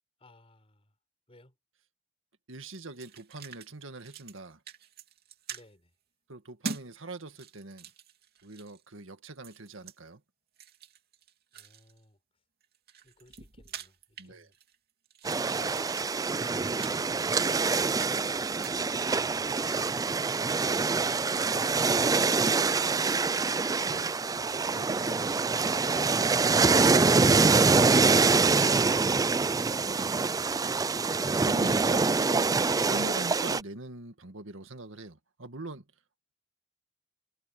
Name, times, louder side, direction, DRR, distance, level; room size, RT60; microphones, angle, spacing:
voice 1, 0.2-1.0 1.3-1.6 5.5-5.9 11.5-12.2 13.0-14.5, left 1 dB, 30° left, 4.9 m, -58 dB
voice 2, 2.5-4.6 6.3-7.9 8.4-10.2 14.2-14.5 17.9-18.3 22.1-22.3 23.8-24.2 24.7-25.2 26.9-27.0 29.8-30.8 31.2-32.5 32.8-35.8, right 2 dB, 80° right, 1.9 m, -43 dB
sound 1, 2.7-3.7 4.0-4.4 4.7-5.7 6.6-6.9 7.3-8.8 9.4-10.0 10.6-12.0 12.6-14.8 15.1-18.3 18.6-18.8, right 5 dB, 55° right, 2.8 m, -44 dB
sound 2, 15.2-33.6, right 4 dB, 20° right, 0.4 m, -25 dB
head